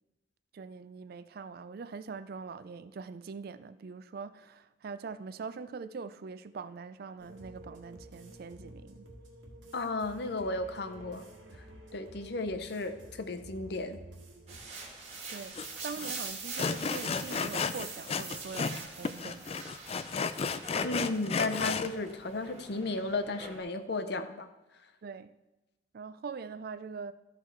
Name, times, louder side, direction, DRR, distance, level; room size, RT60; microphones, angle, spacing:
voice 1, 0.5-9.1 15.3-15.6 15.8-19.5 25.0-25.4 25.9-27.1, right 5 dB, 50° right, 0.3 m, -43 dB
sound 1, 7.2-14.6, right 1 dB, 85° right, 1.6 m, -51 dB
voice 2, 9.7-11.3 11.9-14.0 20.8-24.5, left 2 dB, 55° left, 0.7 m, -34 dB
sound 2, 14.5-23.6, right 4 dB, 30° right, 1.8 m, -44 dB
Sawing, 15.6-15.7 16.0-16.1 16.6-18.8 19.1-21.9, left 5 dB, 30° left, 0.3 m, -33 dB
13.5 x 4.7 x 4.5 m
head